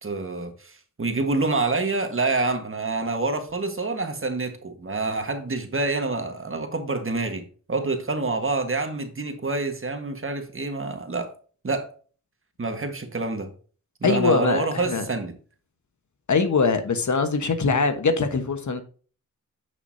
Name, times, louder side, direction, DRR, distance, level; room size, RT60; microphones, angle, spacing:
voice 1, 0.0-11.3 11.6-11.9 12.6-13.5 14.0-15.3, right 3 dB, 40° right, 1.6 m, -27 dB
voice 2, 14.0-15.0 16.3-18.8, left 4 dB, 60° left, 1.3 m, -22 dB
8.9 x 6.7 x 2.7 m
wide cardioid pair, 85°, 32 cm